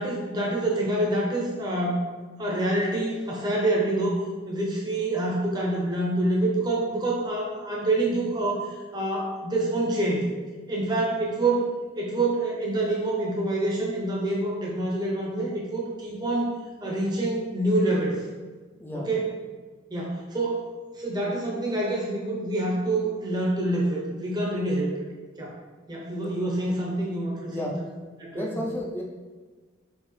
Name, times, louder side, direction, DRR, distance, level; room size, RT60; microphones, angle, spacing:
voice 1, 0.0-2.0 2.4-4.2 4.5-10.3 10.7-11.6 11.9-16.5 16.8-18.2 18.9-19.4 19.9-20.7 21.0-24.9 25.4-25.6 25.9-27.7 28.2-28.5, right 2 dB, 20° right, -3 dB, 0.7 m, -26 dB
voice 2, 28.3-29.0, left 1 dB, 10° left, -1 dB, 0.4 m, -32 dB
4.6 x 3.0 x 3.1 m, 1.4 s
head